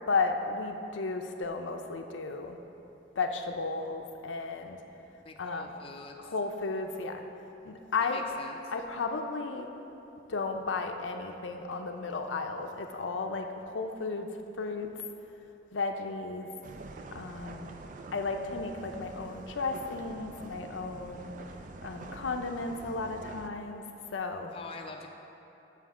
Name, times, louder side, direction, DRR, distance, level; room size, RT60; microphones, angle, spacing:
voice 1, 0.1-2.6 3.2-4.8 5.4-5.7 6.2-7.2 7.6-8.3 8.7-9.7 10.3-14.3 14.6-14.9 15.7-16.5 17.1-17.8 18.1-21.3 21.8-23.8 24.1-24.5, left 4 dB, 90° left, 4 dB, 0.6 m, -34 dB
voice 2, 5.2-6.3 8.0-8.6 24.5-25.1, left 4 dB, 30° left, 2 dB, 0.5 m, -45 dB
sound 1, 16.6-23.5, right 3 dB, 45° right, 0.4 m, -46 dB
7.1 x 5.8 x 6.1 m, 3.0 s
head